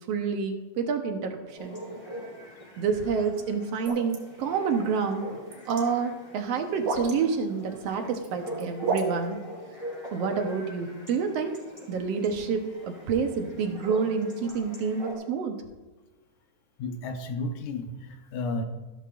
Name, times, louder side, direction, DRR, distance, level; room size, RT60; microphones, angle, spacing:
voice 1, 0.1-1.8 2.8-5.3 5.7-9.4 10.1-11.6 11.9-15.6, right 5 dB, 65° right, 5 dB, 1.9 m, -28 dB
Chatter / Bark / Livestock farm animals working animals, 1.6-15.1, equal, 10° left, 3.6 m, -43 dB
sound 1, 3.8-4.2 5.3-5.8 6.8-7.1 8.0-8.3 8.6-9.1, right 4 dB, 80° right, 3.0 m, -29 dB
voice 2, 16.8-18.7, left 2 dB, 90° left, 6 dB, 2.5 m, -32 dB
14.0 x 12.5 x 2.6 m, 1.2 s
omnidirectional pair, 3.4 m